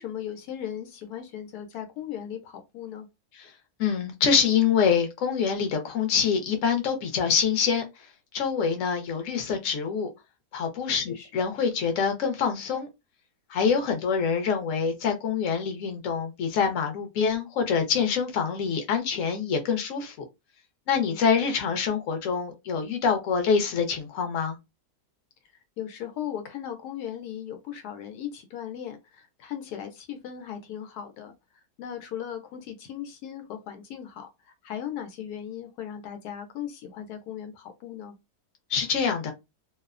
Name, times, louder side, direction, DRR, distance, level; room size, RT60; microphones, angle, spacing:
voice 1, 0.0-3.1 11.1-11.3 20.9-21.2 25.8-31.3 31.8-34.3 34.6-38.1, left 9 dB, 85° left, 1.1 m, -37 dB
voice 2, 3.8-7.8 8.3-10.1 10.5-12.9 13.5-20.2 20.9-24.6 38.7-39.3, left 6 dB, 65° left, 1.0 m, -25 dB
2.7 x 2.1 x 2.4 m
omnidirectional pair, 1.6 m